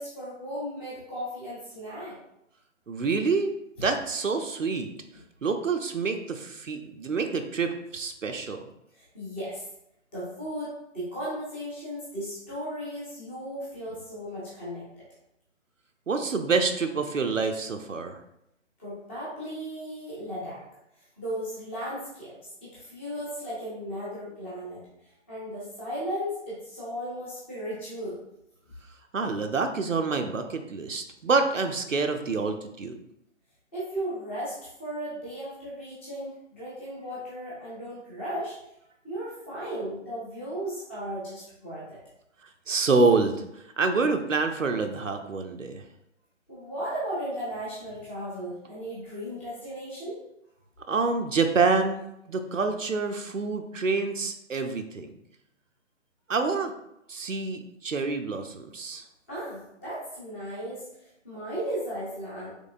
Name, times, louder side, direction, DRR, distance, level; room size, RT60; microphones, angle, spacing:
voice 1, 0.0-2.1 8.9-9.6 10.1-15.1 18.8-20.6 21.2-24.8 25.3-28.2 33.7-34.5 34.8-38.6 39.0-42.0 46.5-50.2 59.3-62.5, equal, 10° left, -9 dB, 0.7 m, -36 dB
voice 2, 2.9-3.5 3.8-4.9 5.4-8.6 16.1-18.2 29.1-33.0 42.7-43.3 43.8-45.8 50.9-55.1 56.3-56.7 57.1-59.0, right 4 dB, 80° right, 5 dB, 0.6 m, -27 dB
5.3 x 3.2 x 2.5 m, 0.82 s
figure-of-eight pair, 140°, 38 cm